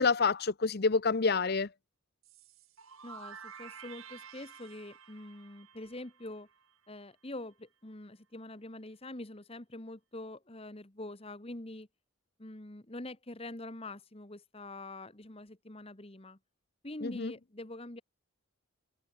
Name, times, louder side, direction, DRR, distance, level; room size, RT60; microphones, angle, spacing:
voice 1, 0.0-1.7 17.0-17.3, left 4 dB, 45° left, 0.7 m, -28 dB
sound 1, 2.2-7.0, right 7 dB, 70° right, 2.9 m, -51 dB
voice 2, 3.0-6.5 6.9-11.9 12.4-16.4 16.8-18.0, left 1 dB, 25° left, 1.4 m, -45 dB
head